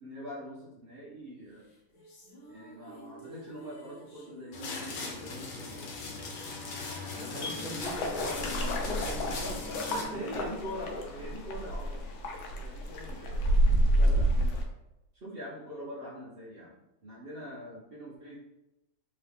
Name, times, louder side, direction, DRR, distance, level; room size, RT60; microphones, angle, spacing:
voice 1, 0.0-1.7 2.5-5.9 7.2-7.9 9.9-14.6 15.1-18.4, equal, 80° right, -6 dB, 0.5 m, -43 dB
sound 1, 1.6-12.0, left 1 dB, 55° left, 1.1 m, -50 dB
sound 2, 4.5-10.0, left 4 dB, 70° left, 1.5 m, -39 dB
voice 2, 7.1-9.8, equal, 30° right, -8 dB, 0.9 m, -42 dB
sound 3, 7.8-14.6, right 1 dB, 90° left, 1.5 m, -29 dB
3.7 x 3.0 x 3.4 m, 0.91 s
omnidirectional pair, 2.2 m